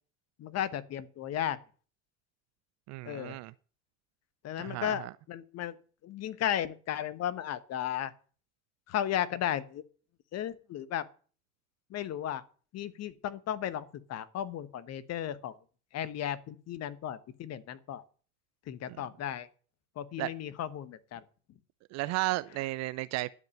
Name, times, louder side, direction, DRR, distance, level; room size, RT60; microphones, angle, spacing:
voice 1, 0.4-1.6 3.0-3.4 4.4-5.7 6.0-8.1 8.9-9.8 10.3-11.0 11.9-12.4 12.7-15.5 15.9-18.0 18.7-19.5 20.0-21.2, left 10 dB, 35° left, 1.1 m, -35 dB
voice 2, 2.9-3.5 4.6-5.1 18.9-19.0 20.2-20.3 21.9-23.3, right 20 dB, 40° right, 0.5 m, -34 dB
12.0 x 5.2 x 8.5 m
figure-of-eight pair, 75°, 42 cm